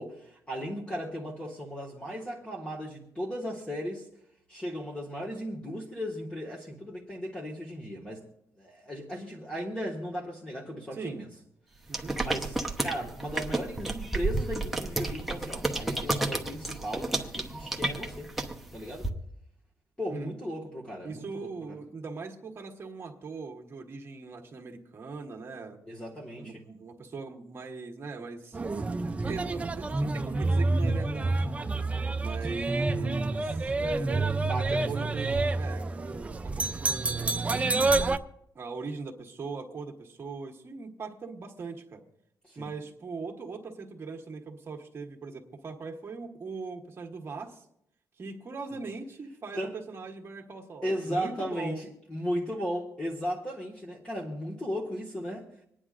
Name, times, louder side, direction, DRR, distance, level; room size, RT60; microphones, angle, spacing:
voice 1, 0.0-4.1 4.5-8.2 8.6-11.3 12.2-18.3 18.7-19.1 20.0-21.5 25.9-26.6 34.3-35.2 42.4-42.7 49.5-49.8 50.8-55.5, equal, 15° left, -4 dB, 1.5 m, -36 dB
voice 2, 10.9-11.3 11.9-12.2 20.1-20.3 21.0-25.8 26.4-28.6 29.2-31.5 32.2-37.8 38.5-42.0 42.5-47.6 48.2-51.8, right 4 dB, 35° right, 2 dB, 1.3 m, -40 dB
sound 1, 11.9-19.1, right 2 dB, 5° right, 0.9 m, -32 dB
sound 2, 28.5-38.2, right 3 dB, 20° right, 0.4 m, -28 dB
26.0 x 9.9 x 2.5 m, 0.74 s
wide cardioid pair, 150°, 7 cm